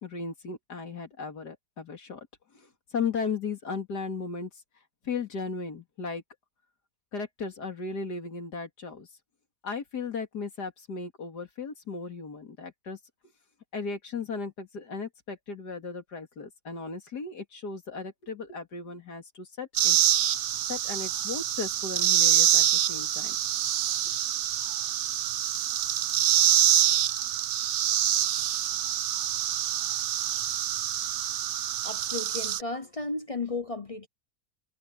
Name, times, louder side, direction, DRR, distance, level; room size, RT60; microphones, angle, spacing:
voice 1, 0.0-2.3 2.5-4.5 5.0-6.2 7.1-9.1 9.6-13.0 13.7-20.0 20.7-23.4, left 5 dB, 85° left, 3.3 m, -36 dB
sound 1, 19.7-32.6, right 11 dB, 60° right, 0.8 m, -26 dB
voice 2, 31.8-34.1, left 3 dB, 35° left, 0.6 m, -34 dB
omnidirectional pair, 1.7 m